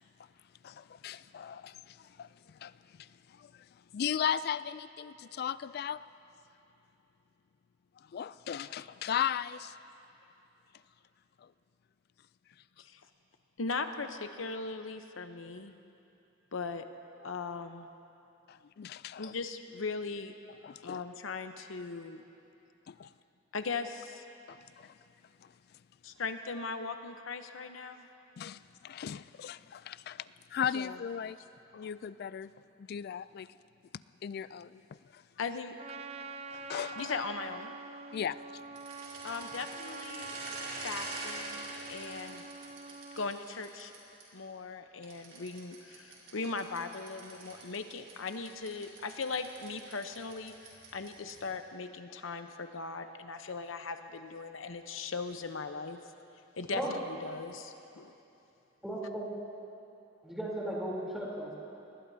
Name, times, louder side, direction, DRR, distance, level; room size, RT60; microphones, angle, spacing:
voice 1, 0.6-3.7 3.9-6.0 8.0-9.8 11.4-11.5 18.5-19.3 20.6-21.0 22.9-23.1 24.5-24.9 25.4-25.5 28.4-31.4 31.7-32.5 32.8-33.5 34.2-35.2 36.5-37.2 38.1-38.4, left 8 dB, 50° left, 16 dB, 0.3 m, -37 dB
voice 2, 13.6-15.7 16.5-16.8 17.2-17.9 19.2-20.3 20.8-22.2 23.5-24.2 26.0-28.1 30.7-31.0 35.4-35.8 37.0-37.7 39.2-40.4 40.8-42.4 43.1-43.9 44.3-56.0 56.6-56.8 57.1-58.1, left 4 dB, 85° left, 8 dB, 0.9 m, -39 dB
Trumpet, 35.8-43.4, right 4 dB, 30° right, 0.5 m, -45 dB
sound 1, 38.7-44.2 45.0-51.5, right 2 dB, 70° right, 4.2 m, -46 dB
voice 3, 58.8-59.3 60.2-61.5, right 1 dB, ahead, -5 dB, 3.4 m, -36 dB
24.5 x 20.0 x 2.8 m, 2.9 s
head